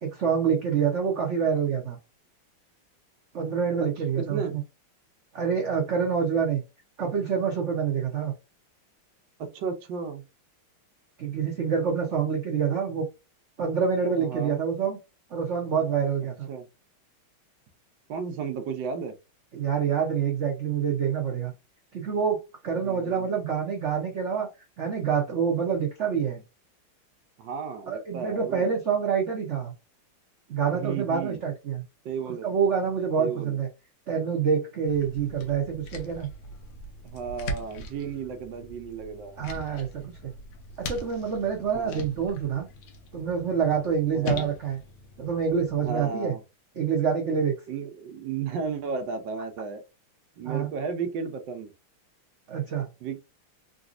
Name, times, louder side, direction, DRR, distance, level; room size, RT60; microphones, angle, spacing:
voice 1, 0.0-2.0 3.3-4.6 5.3-6.6 7.0-8.3 11.2-13.1 13.6-15.0 15.3-16.5 19.5-21.5 21.9-22.4 22.6-24.5 24.8-26.4 27.9-29.7 30.5-31.8 32.4-33.7 34.1-36.3 39.4-40.3 40.8-42.7 43.1-44.8 45.2-46.3 46.8-47.5 50.4-50.7 52.5-52.9, right 7 dB, 85° right, 0.6 m, -26 dB
voice 2, 4.2-4.6 9.4-10.2 14.2-14.6 16.5-16.7 18.1-19.1 22.7-23.4 27.4-28.7 30.7-31.4 32.0-32.5 33.2-33.6 37.0-39.4 41.7-42.1 44.1-44.5 45.8-46.4 47.7-49.8 50.4-51.7 53.0-53.2, right 5 dB, 65° right, 1.3 m, -34 dB
sound 1, 34.9-46.1, left 1 dB, 70° left, 1.4 m, -40 dB
3.9 x 2.6 x 2.4 m
omnidirectional pair, 2.4 m